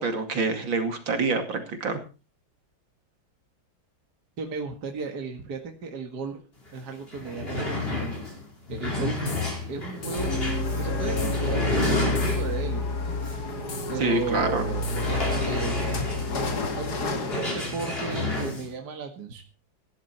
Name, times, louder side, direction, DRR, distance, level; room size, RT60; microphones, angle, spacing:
voice 1, 0.0-2.0 14.0-14.6, right 3 dB, 75° right, 6 dB, 3.2 m, -26 dB
voice 2, 4.4-6.4 6.7-8.2 8.7-9.2 9.7-10.4 10.8-13.1 13.9-14.9 15.4-15.8 16.3-19.4, right 4 dB, 55° right, 4 dB, 2.4 m, -35 dB
sound 1, 6.7-6.8 7.0-12.7 13.2-13.4 13.8-13.9 14.8-18.7, left 2 dB, 30° left, 5.3 m, -30 dB
sound 2, 9.3-9.5 10.0-10.4 11.2-11.5 12.2-12.5 13.7-14.0 14.8-15.2, left 5 dB, 80° left, 3.1 m, -41 dB
sound 3, 10.2-17.4, left 2 dB, 55° left, 2.5 m, -29 dB
17.0 x 11.5 x 4.4 m, 0.33 s
omnidirectional pair, 2.1 m